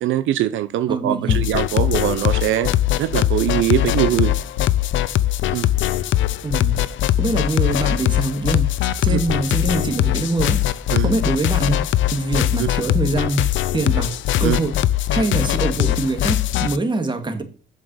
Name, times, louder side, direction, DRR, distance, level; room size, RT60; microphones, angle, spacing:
voice 1, 0.0-2.7 3.0-4.3 5.5-5.7 9.1-9.2 10.9-11.1 12.6-12.7 14.4-14.6, right 13 dB, 80° right, 0.6 m, -21 dB
voice 2, 0.9-1.5 6.4-6.8 7.2-8.7 9.0-10.6 11.0-11.8 12.1-13.4 13.7-14.1 14.4-14.7 15.1-17.4, right 2 dB, 25° right, 2.1 m, -23 dB
sound 1, 1.3-16.8, left 12 dB, 75° left, 0.5 m, -21 dB
7.3 x 5.5 x 6.3 m
cardioid pair, 90°, 20 cm